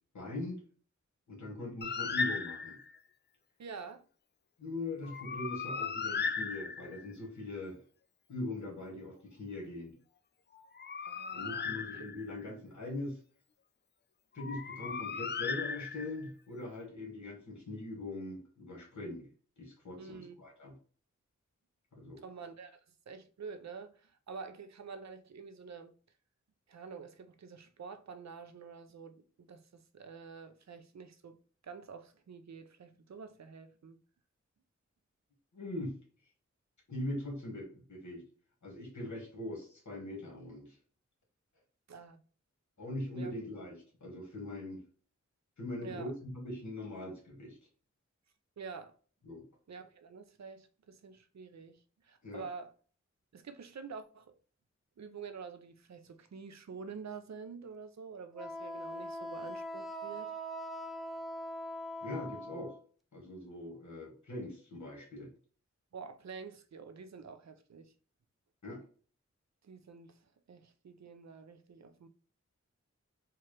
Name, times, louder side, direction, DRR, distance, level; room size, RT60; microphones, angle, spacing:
voice 1, 0.1-0.6 1.3-2.8 4.6-7.8 8.3-9.9 11.3-13.2 14.3-19.3 19.6-20.7 21.9-22.2 35.5-35.9 36.9-38.2 38.6-40.8 42.8-44.8 45.6-47.6 49.2-49.4 52.2-52.5 62.0-62.7 63.1-65.3 68.6-68.8, left 2 dB, 75° left, 1.7 m, -41 dB
Bird, 1.8-3.0 5.0-7.1 10.5-12.4 14.4-16.3, left 5 dB, 40° left, 0.4 m, -37 dB
voice 2, 3.6-4.0 11.1-11.7 11.9-12.1 20.0-20.3 22.2-22.8 23.1-25.9 26.7-31.4 31.6-34.0 41.9-42.2 43.1-43.3 45.8-46.1 48.6-48.9 49.7-52.7 53.3-54.4 55.0-60.3 65.9-67.9 69.6-70.2 70.5-72.1, right 5 dB, 65° right, 0.5 m, -48 dB
Wind instrument woodwind instrument, 58.3-62.8, equal, ahead, 0.6 m, -42 dB
4.4 x 2.4 x 3.2 m
wide cardioid pair, 45°, 29 cm